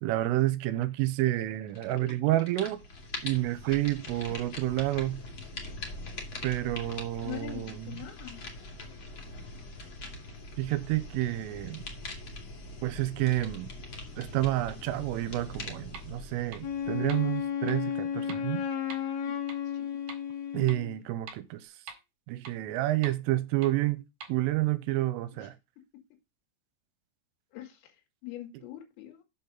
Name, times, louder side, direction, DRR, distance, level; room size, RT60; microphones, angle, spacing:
voice 1, 0.0-2.8 3.2-5.2 6.4-8.0 10.6-11.8 12.8-13.7 14.2-18.6 20.5-21.7 22.3-24.0 24.3-25.5, right 16 dB, 85° right, 3.3 m, -29 dB
sound 1, 1.7-2.1 2.4-17.4, left 2 dB, 45° left, 1.7 m, -43 dB
voice 2, 7.2-8.4 19.3-19.4 19.7-19.9 25.4-25.5 27.5-27.9 28.2-29.2, left 14 dB, 80° left, 4.3 m, -42 dB
sound 2, 15.9-16.0 16.5-16.6 17.1-17.2 17.7-17.8 18.3-18.4 18.9-19.0 19.5-19.6 20.1-20.2 20.7-20.8 21.3-21.4 21.9-22.0 22.4-22.5 23.0-23.1 23.6-23.7 24.2-24.3, right 5 dB, 55° right, 3.1 m, -43 dB
Wind instrument woodwind instrument, 16.6-21.0, left 8 dB, 65° left, 1.8 m, -33 dB
8.2 x 6.6 x 3.9 m
omnidirectional pair, 5.9 m